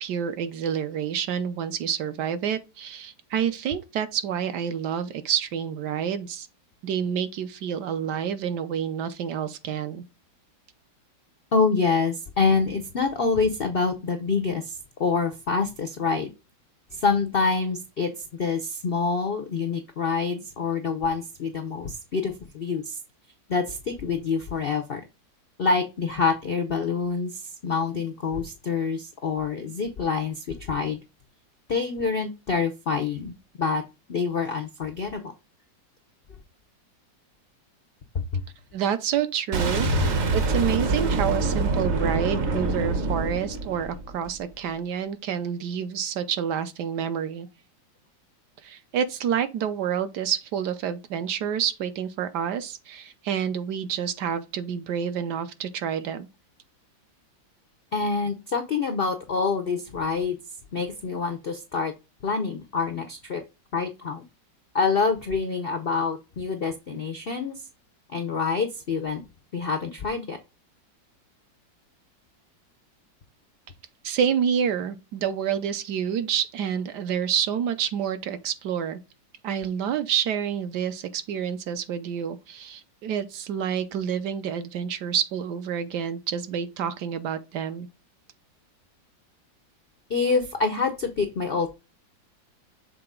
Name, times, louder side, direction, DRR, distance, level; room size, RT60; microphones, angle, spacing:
voice 1, 0.0-6.5 6.8-10.0 38.7-47.5 48.6-56.3 74.0-79.0 79.4-87.9, right 8 dB, 70° right, 1.2 m, -28 dB
voice 2, 11.5-16.3 16.9-23.0 23.5-25.0 25.6-31.0 31.7-33.3 33.6-33.8 34.1-35.3 38.3-38.4 57.9-60.4 60.7-61.9 62.2-63.4 63.7-64.2 64.7-67.6 68.1-69.2 69.5-70.4 90.1-91.8, left 4 dB, 90° left, 0.5 m, -26 dB
Boom, 39.5-44.4, right 3 dB, 50° right, 0.9 m, -25 dB
6.7 x 4.0 x 3.7 m
omnidirectional pair, 2.0 m